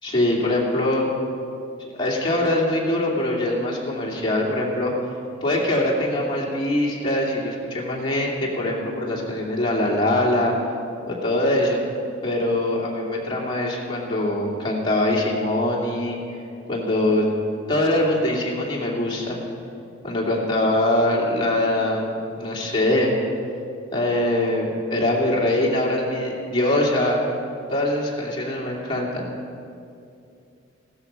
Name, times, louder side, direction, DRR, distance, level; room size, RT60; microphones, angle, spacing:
voice 1, 0.0-1.1 1.9-4.9 5.4-10.5 11.1-11.8 12.2-16.4 16.7-17.3 17.7-19.4 20.0-23.1 23.9-27.4 27.7-29.2, left 1 dB, 25° left, -4 dB, 2.6 m, -23 dB
16.0 x 13.0 x 5.6 m, 2.6 s
head